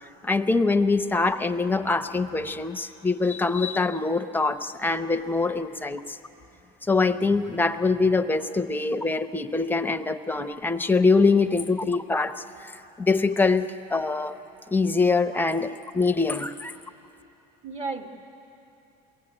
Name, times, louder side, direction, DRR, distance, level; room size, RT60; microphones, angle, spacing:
voice 1, 0.2-6.2 6.9-12.7 13.0-14.4 14.7-16.7, left 3 dB, 10° left, 10 dB, 0.8 m, -24 dB
voice 2, 17.6-18.1, right 3 dB, 35° right, 4 dB, 2.1 m, -34 dB
23.0 x 17.0 x 9.0 m, 2.9 s
supercardioid pair, 110°, 19 cm